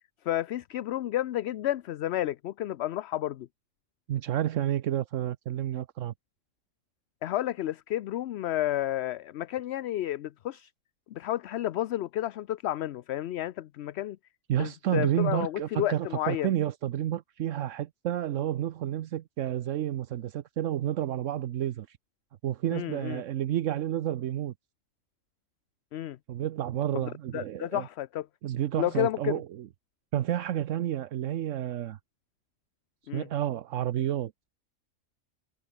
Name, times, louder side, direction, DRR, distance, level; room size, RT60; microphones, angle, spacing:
voice 1, 0.2-3.5 7.2-10.7 11.1-14.2 14.6-16.5 22.7-23.2 25.9-26.2 26.9-28.3 28.8-29.4 33.1-33.3, left 13 dB, 65° left, 0.8 m, -31 dB
voice 2, 4.1-6.1 14.5-22.0 22.4-24.5 26.3-27.9 28.4-29.7 30.1-32.0 33.1-34.5, right 12 dB, 75° right, 1.0 m, -30 dB
omnidirectional pair, 1.3 m